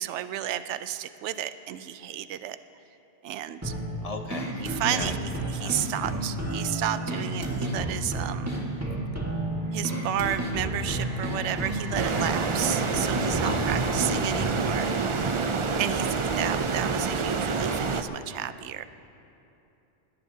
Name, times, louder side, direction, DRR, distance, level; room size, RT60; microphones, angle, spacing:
voice 1, 0.0-2.6 3.2-3.7 4.6-8.5 9.7-15.2 15.8-18.8, right 11 dB, 75° right, 12 dB, 0.8 m, -32 dB
sound 1, 3.6-14.6, right 1 dB, 15° right, 1.6 m, -31 dB
voice 2, 4.0-4.6 4.9-5.1 5.5-5.7 13.4-14.3, left 3 dB, 35° left, 5 dB, 0.7 m, -37 dB
sound 2, 4.5-16.1, right 4 dB, 80° left, 4.0 m, -42 dB
sound 3, 11.9-18.0, right 4 dB, 45° right, 0.4 m, -27 dB
21.5 x 17.5 x 2.8 m, 2.9 s
omnidirectional pair, 1.3 m